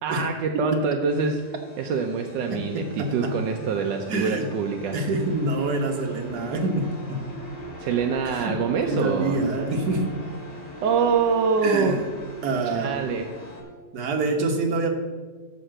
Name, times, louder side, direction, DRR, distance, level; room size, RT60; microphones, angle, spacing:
voice 1, 0.0-1.5 1.8-5.0 7.8-9.4 10.8-12.0 12.7-13.3, right 5 dB, 80° right, 3 dB, 1.3 m, -25 dB
sound 1, 1.2-13.6, equal, 35° left, 2.0 m, -41 dB
voice 2, 2.5-3.3 4.1-4.5 4.9-7.2 8.4-8.6 8.9-10.1 11.6-12.0 12.4-13.0 13.9-14.9, right 2 dB, 65° right, 3 dB, 1.6 m, -26 dB
11.0 x 3.8 x 7.6 m, 1.4 s
omnidirectional pair, 1.9 m